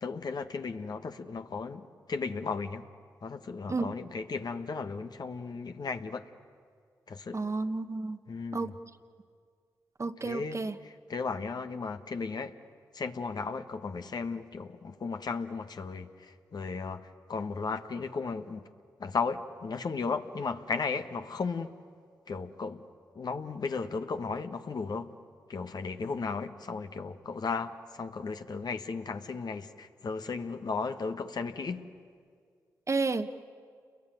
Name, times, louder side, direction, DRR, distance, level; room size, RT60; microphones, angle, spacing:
voice 1, 0.0-2.8 3.2-6.2 7.1-7.4 8.3-8.8 10.2-12.5 12.9-18.6 19.0-21.7 22.3-22.8 23.1-25.1 25.5-31.8, left 4 dB, 60° left, 7 dB, 1.4 m, -35 dB
voice 2, 7.3-8.2 8.5-8.7 10.0-10.8 32.9-33.3, right 3 dB, 40° right, 9 dB, 1.3 m, -31 dB
29.0 x 22.0 x 9.2 m, 2.1 s
supercardioid pair, 40°, 8 cm